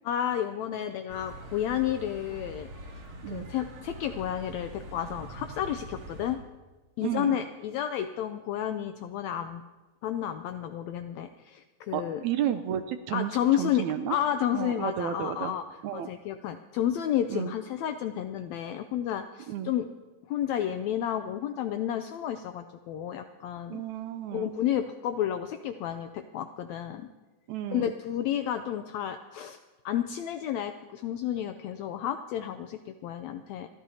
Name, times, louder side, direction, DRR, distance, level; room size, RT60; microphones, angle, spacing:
voice 1, 0.0-2.7 3.3-6.4 7.0-9.6 10.0-12.2 13.1-13.8 14.1-15.6 15.9-19.9 20.3-23.8 24.3-27.1 27.7-29.6 29.8-33.7, left 10 dB, 80° left, 8 dB, 1.6 m, -31 dB
sound 1, 1.1-6.4, right 1 dB, 60° right, 3.9 m, -44 dB
voice 2, 7.0-7.4 11.9-14.2 14.5-15.5 15.8-16.1 17.3-17.5 19.5-19.7 23.7-24.6 27.5-27.9, right 10 dB, 75° right, 9 dB, 1.8 m, -32 dB
28.0 x 13.5 x 2.8 m, 1.2 s
omnidirectional pair, 3.7 m